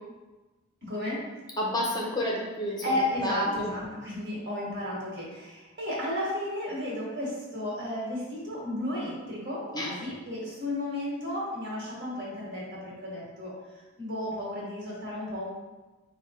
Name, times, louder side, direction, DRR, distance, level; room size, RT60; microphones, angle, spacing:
voice 1, 0.8-1.2 2.8-13.5 14.0-15.5, left 1 dB, 55° right, -5 dB, 1.4 m, -33 dB
voice 2, 1.6-3.7 9.7-9.9, left 1 dB, 20° left, -2 dB, 0.6 m, -31 dB
4.9 x 2.2 x 4.1 m, 1.2 s
head